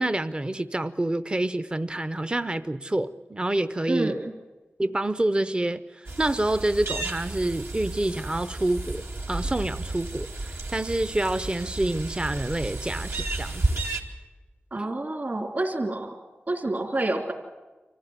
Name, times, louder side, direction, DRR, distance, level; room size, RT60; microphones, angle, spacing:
voice 1, 0.0-4.2 4.8-13.8, right 1 dB, 25° right, 12 dB, 0.7 m, -27 dB
voice 2, 3.9-4.3 14.7-16.1 16.5-17.3, right 2 dB, 50° right, 1 dB, 3.1 m, -28 dB
sound 1, 6.1-14.0, right 2 dB, 80° right, 2.6 m, -32 dB
25.5 x 15.0 x 9.6 m, 1.2 s
wide cardioid pair, 80°, 4 cm